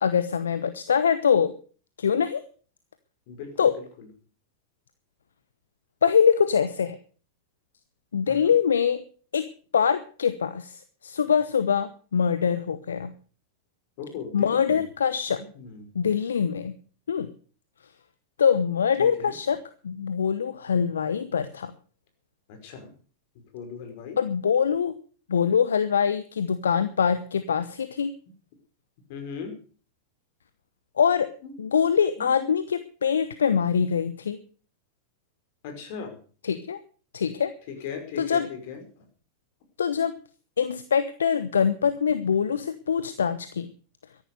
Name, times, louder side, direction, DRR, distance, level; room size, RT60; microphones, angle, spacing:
voice 1, 0.0-1.5 2.0-2.4 3.6-3.8 6.0-7.0 8.1-9.0 9.3-13.2 14.3-15.4 15.9-16.8 17.1-17.3 18.4-21.7 24.2-25.0 25.3-28.1 31.0-31.3 31.6-34.4 36.4-36.8 37.1-37.5 38.2-38.5 39.8-40.1 40.6-43.7, left 7 dB, 75° left, 13 dB, 0.9 m, -24 dB
voice 2, 3.3-4.1 8.3-8.5 14.0-14.8 15.3-15.9 19.0-19.4 22.5-22.9 23.5-24.2 29.1-29.5 31.4-31.5 32.2-32.5 35.6-36.2 37.7-39.0, left 6 dB, 55° left, 6 dB, 5.2 m, -38 dB
13.5 x 11.0 x 6.7 m, 0.41 s
figure-of-eight pair, 95°, 0 cm